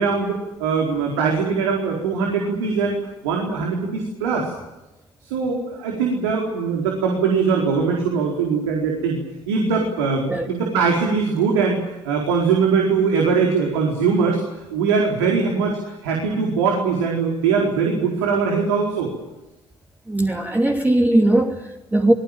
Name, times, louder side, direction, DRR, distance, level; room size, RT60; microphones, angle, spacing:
voice 1, 0.0-3.0 3.2-4.5 5.2-9.2 9.5-14.4 14.7-19.1, right 5 dB, 75° right, 0 dB, 4.5 m, -21 dB
voice 2, 20.1-22.1, right 1 dB, 10° right, 1 dB, 2.8 m, -19 dB
27.5 x 21.5 x 7.5 m, 0.99 s
hypercardioid pair, 55°, 14 cm